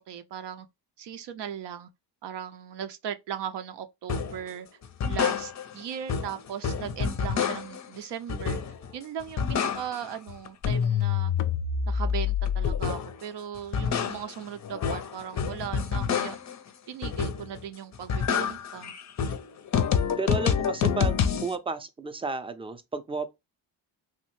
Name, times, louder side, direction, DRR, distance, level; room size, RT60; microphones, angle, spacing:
voice 1, 0.1-0.7 1.0-1.9 2.2-4.7 5.1-8.6 8.9-11.3 11.9-16.4 16.9-18.9, right 9 dB, 60° right, 0.5 m, -37 dB
sound 1, 4.1-4.4 4.8-5.8 6.1-7.9 8.3-8.9 9.2-10.2 10.5-13.2 13.6-16.6 17.0-17.6 17.9-21.5, left 7 dB, 40° left, 0.5 m, -28 dB
sound 2, 10.3-14.6, left 11 dB, 90° left, 0.5 m, -46 dB
voice 2, 20.2-21.2 21.4-23.3, right 3 dB, 10° right, 0.5 m, -32 dB
3.2 x 2.1 x 3.0 m
cardioid pair, 75°, 46 cm